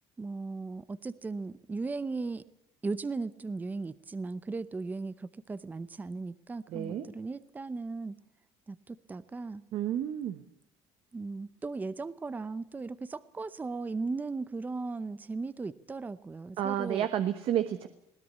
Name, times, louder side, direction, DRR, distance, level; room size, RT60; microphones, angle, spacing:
voice 1, 0.2-2.4 2.8-8.2 8.7-9.6 11.1-17.1, right 3 dB, 15° right, 15 dB, 0.7 m, -37 dB
voice 2, 6.7-7.1 9.7-10.4 16.6-17.9, right 10 dB, 60° right, 9 dB, 1.2 m, -30 dB
21.0 x 17.0 x 8.4 m, 0.81 s
cardioid pair, 130°, 11 cm